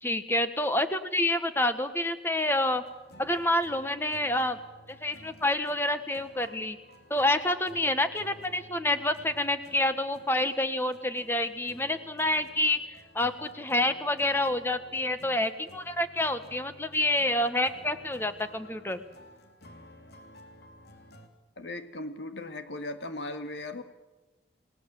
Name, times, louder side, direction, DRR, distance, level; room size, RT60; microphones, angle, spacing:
voice 1, 0.0-2.8 3.2-4.6 4.9-6.8 7.1-12.8 13.1-19.0, left 1 dB, 10° left, 9 dB, 1.2 m, -28 dB
sound 1, 2.5-21.3, equal, 60° left, 3.2 m, -53 dB
voice 2, 21.6-23.8, left 2 dB, 80° left, 7 dB, 2.0 m, -37 dB
29.0 x 17.5 x 7.7 m, 1.1 s
head